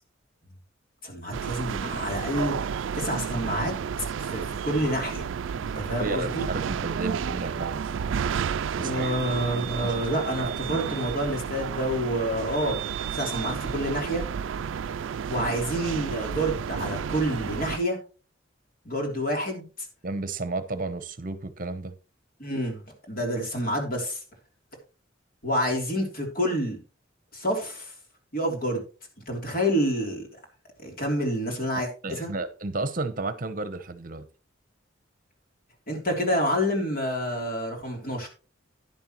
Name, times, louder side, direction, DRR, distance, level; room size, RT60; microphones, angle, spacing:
voice 1, 1.0-2.5 2.9-3.7 4.0-5.3 5.6-6.4 8.8-12.8 13.1-14.2 15.3-18.0 18.8-19.7 22.4-22.8 23.1-24.2 25.4-26.8 27.3-27.9 28.3-28.8 29.3-30.2 30.8-32.3 35.9-38.3, equal, 50° left, 3.3 m, -28 dB
sound 1, 1.3-17.8, right 7 dB, 85° right, 0.4 m, -31 dB
voice 2, 5.5-7.8 8.8-9.1 9.5-10.1 10.4-10.9 20.0-21.9 31.7-34.2, right 3 dB, 45° right, 0.9 m, -33 dB
11.0 x 10.5 x 3.1 m
head